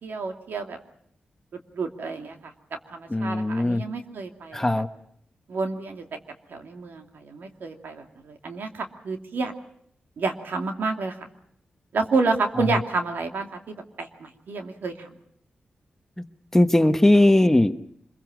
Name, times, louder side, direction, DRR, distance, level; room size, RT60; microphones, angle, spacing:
voice 1, 0.0-0.8 1.7-2.5 2.9-4.7 5.5-6.2 6.5-9.5 10.2-11.3 11.9-15.2, right 3 dB, 85° right, 4 dB, 2.6 m, -29 dB
voice 2, 3.1-3.8 4.5-4.9 12.7-12.8 16.2-16.3 16.5-17.9, left 1 dB, 10° left, 9 dB, 1.1 m, -19 dB
25.5 x 22.5 x 6.2 m, 0.69 s
wide cardioid pair, 120°, 3 cm